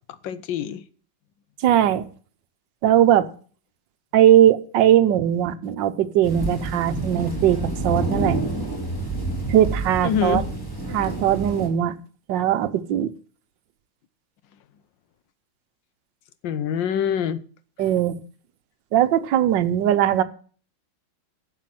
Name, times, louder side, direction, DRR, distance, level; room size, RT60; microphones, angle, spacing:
voice 1, 0.2-0.8 10.0-10.5 16.4-17.4, left 8 dB, 75° left, 1.5 m, -25 dB
voice 2, 1.6-2.1 2.8-3.3 4.1-8.4 9.5-10.4 10.9-11.9 12.3-13.1 17.8-18.2 18.9-20.2, right 11 dB, 70° right, 1.5 m, -19 dB
sound 1, 6.2-11.7, right 2 dB, 10° left, 3.5 m, -28 dB
11.5 x 7.5 x 7.5 m
omnidirectional pair, 2.1 m